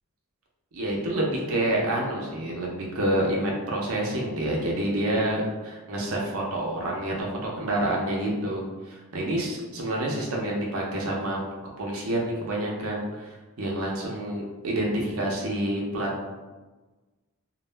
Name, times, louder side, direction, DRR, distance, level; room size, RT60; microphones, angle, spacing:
voice 1, 0.7-11.4 11.8-16.1, right 1 dB, 85° right, -2 dB, 0.5 m, -28 dB
2.3 x 2.1 x 3.2 m, 1.2 s
head